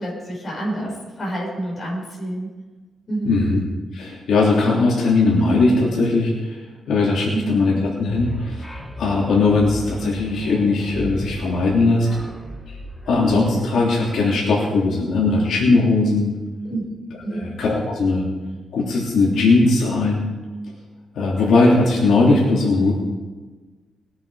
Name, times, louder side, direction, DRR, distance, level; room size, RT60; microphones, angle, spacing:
voice 1, 0.0-2.5 3.1-3.4 7.3-7.6 16.6-16.8 17.2-17.5, right 1 dB, 25° left, -3 dB, 5.3 m, -28 dB
voice 2, 3.2-3.6 3.9-6.6 6.9-8.7 9.0-12.1 12.7-12.8 13.1-16.3 17.3-18.2 18.7-20.3 21.1-22.9, left 3 dB, 70° left, -5 dB, 3.1 m, -19 dB
sound 1, 8.1-14.3, left 1 dB, 5° left, 1.1 m, -36 dB
21.0 x 8.8 x 4.9 m, 1.3 s
wide cardioid pair, 175°, 0 cm